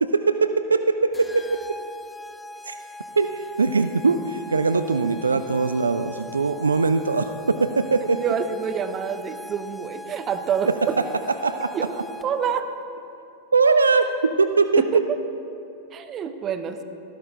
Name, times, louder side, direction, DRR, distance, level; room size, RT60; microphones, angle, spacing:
voice 1, 0.0-1.6 2.6-2.8 3.1-8.2 10.7-11.1 11.4-11.7 13.5-14.9, right 4 dB, 75° right, 10 dB, 0.4 m, -21 dB
sound 1, 1.1-12.5, left 2 dB, 10° left, 0.5 m, -41 dB
voice 2, 8.1-11.0 11.7-11.9 12.2-12.7 14.8-15.0 15.9-16.8, right 7 dB, 30° right, 8 dB, 0.8 m, -27 dB
13.5 x 13.0 x 3.7 m, 2.7 s
figure-of-eight pair, 90°, 0 cm